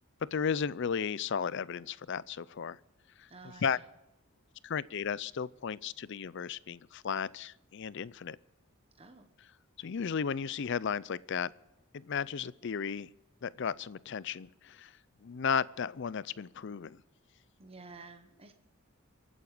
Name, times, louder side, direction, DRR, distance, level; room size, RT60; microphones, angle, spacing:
voice 1, 0.3-2.8 3.2-3.8 4.6-8.4 9.8-11.5 11.9-13.1 13.4-14.9 15.2-17.0, left 6 dB, 55° left, 20 dB, 0.5 m, -34 dB
voice 2, 3.3-3.8 9.0-9.3 17.6-18.5, right 3 dB, 30° right, 6 dB, 1.3 m, -51 dB
24.0 x 9.3 x 5.0 m, 0.94 s
head